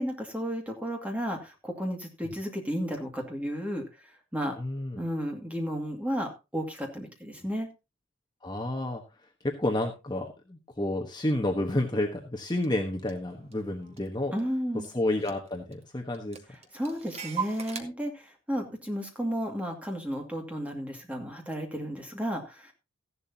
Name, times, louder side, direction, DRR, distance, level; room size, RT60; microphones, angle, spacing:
voice 1, 0.0-3.8 4.3-4.6 5.0-7.7 14.3-14.9 16.7-22.7, equal, 5° right, 2 dB, 2.2 m, -33 dB
voice 2, 4.6-5.0 8.4-9.0 9.4-14.4 14.9-16.4, left 1 dB, 20° left, 1 dB, 1.2 m, -30 dB
Clock, 12.6-12.7 13.1-14.6 14.8-14.9 15.2-15.8 16.1-17.8, right 6 dB, 30° right, 1.3 m, -39 dB
14.5 x 11.0 x 2.8 m, 0.27 s
head